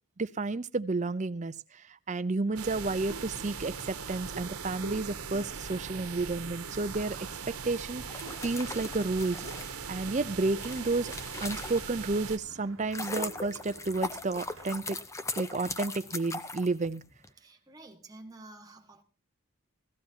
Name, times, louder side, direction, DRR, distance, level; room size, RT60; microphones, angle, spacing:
voice 1, 0.2-7.2 7.6-9.4 9.9-11.1 11.4-15.0 15.4-17.0, right 3 dB, 30° right, 0.5 m, -31 dB
sound 1, 2.5-14.8, right 3 dB, 60° right, 1.1 m, -49 dB
sound 2, 2.6-12.4, right 6 dB, 80° right, 1.3 m, -40 dB
sound 3, 8.1-12.1 12.6-17.3, left 3 dB, 15° left, 0.6 m, -39 dB
voice 2, 17.4-19.0, right 2 dB, 15° right, 1.5 m, -50 dB
17.0 x 14.0 x 2.8 m
head